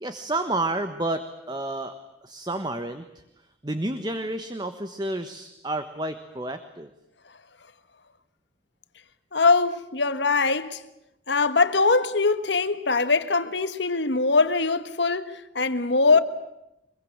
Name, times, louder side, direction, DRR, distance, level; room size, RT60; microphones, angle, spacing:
voice 1, 0.0-1.9 2.2-3.0 3.6-6.9, right 2 dB, 20° right, 1.3 m, -30 dB
voice 2, 9.3-10.8 11.3-16.2, left 4 dB, 70° left, 1.6 m, -22 dB
25.0 x 22.5 x 8.8 m
head